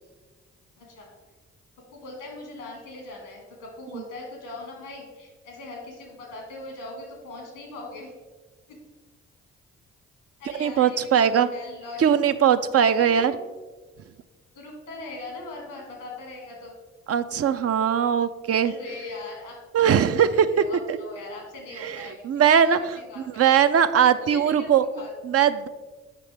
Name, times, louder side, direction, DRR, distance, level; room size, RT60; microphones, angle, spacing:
voice 1, 0.8-1.1 1.9-8.1 10.4-12.2 13.0-13.4 14.5-16.7 18.6-20.1 20.5-22.2 22.6-23.6 24.1-25.1, left 2 dB, 90° left, 0 dB, 1.7 m, -40 dB
voice 2, 10.5-11.5 12.0-13.4 17.1-18.7 19.7-21.0 21.8-23.0 23.3-24.8 25.2-25.7, right 8 dB, 50° right, 11 dB, 0.5 m, -20 dB
7.5 x 5.6 x 3.4 m, 1.3 s
hypercardioid pair, 40°, 33 cm